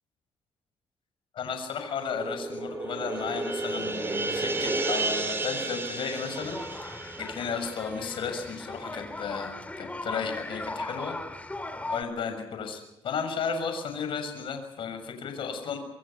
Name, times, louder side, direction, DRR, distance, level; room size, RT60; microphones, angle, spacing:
voice 1, 1.3-11.1 11.9-15.8, left 6 dB, 65° left, 6 dB, 6.7 m, -34 dB
sound 1, 2.0-8.6, right 2 dB, 25° right, 5.4 m, -32 dB
sound 2, 6.3-12.0, left 2 dB, 15° left, 2.7 m, -38 dB
27.0 x 24.0 x 5.9 m, 0.90 s
cardioid pair, 90°, 9 cm